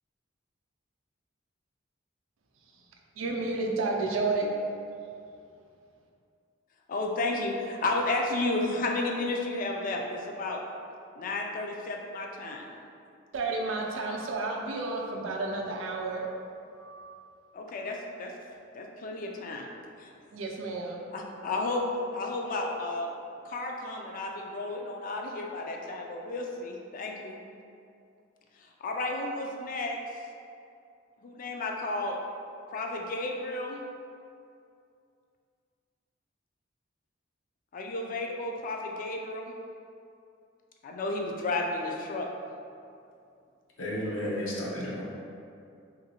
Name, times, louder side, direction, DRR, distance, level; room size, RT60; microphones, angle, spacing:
voice 1, 3.2-4.5 13.3-16.4 16.7-17.2 20.3-21.0, right 3 dB, 85° right, 0 dB, 0.4 m, -31 dB
voice 2, 6.9-10.6 11.2-12.7 17.5-18.3 18.7-19.7 20.0-20.1 21.1-21.9 22.1-23.1 23.4-27.4 28.6-30.0 31.2-32.2 32.7-33.8 37.7-39.5 40.8-42.3, left 2 dB, 45° left, 1 dB, 0.3 m, -32 dB
voice 3, 43.8-45.0, equal, 80° left, -5 dB, 0.7 m, -32 dB
3.0 x 2.6 x 2.8 m, 2.5 s
head